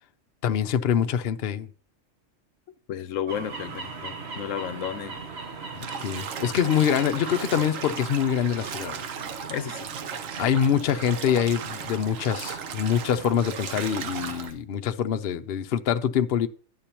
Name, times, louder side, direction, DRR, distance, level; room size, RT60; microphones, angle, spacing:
voice 1, 0.4-1.7 6.0-9.0 10.4-16.5, left 8 dB, 55° left, 0.8 m, -25 dB
voice 2, 2.9-5.2 9.5-9.9, left 9 dB, 80° left, 1.0 m, -32 dB
sound 1, 3.3-14.5, right 4 dB, 55° right, 1.4 m, -39 dB
Bathtub (filling or washing), 5.7-14.5, right 7 dB, 85° right, 1.2 m, -37 dB
11.5 x 8.3 x 2.9 m
omnidirectional pair, 1.3 m